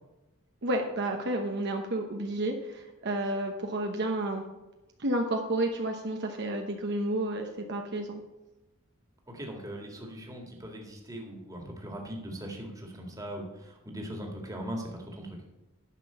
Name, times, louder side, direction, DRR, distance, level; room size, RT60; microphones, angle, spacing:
voice 1, 0.6-4.4 5.0-8.2, right 1 dB, 55° right, 3 dB, 1.0 m, -31 dB
voice 2, 9.3-15.4, equal, 15° right, 1 dB, 1.9 m, -40 dB
10.5 x 6.0 x 6.8 m, 1.0 s
head